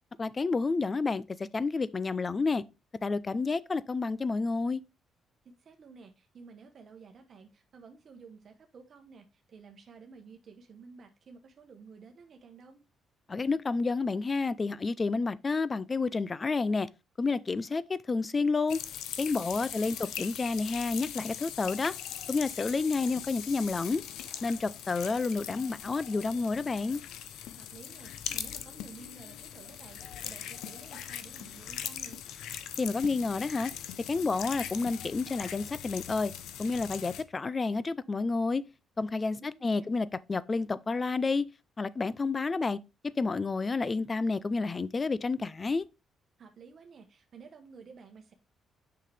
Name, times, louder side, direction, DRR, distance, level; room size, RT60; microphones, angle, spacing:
voice 1, 0.2-1.2 1.5-2.6 3.0-4.8 13.3-16.9 17.2-18.8 19.2-21.9 22.3-24.0 24.4-27.0 32.8-33.7 34.1-36.3 36.6-38.6 39.0-41.5 41.8-42.8 43.0-45.8, left 4 dB, 30° left, 0.4 m, -30 dB
voice 2, 5.4-12.8 19.5-20.1 27.6-32.2 39.3-39.9 46.4-48.3, right 5 dB, 55° right, 1.1 m, -52 dB
sound 1, 18.7-37.2, left 10 dB, 85° left, 0.7 m, -41 dB
6.4 x 5.8 x 3.3 m
cardioid pair, 90°, 0 cm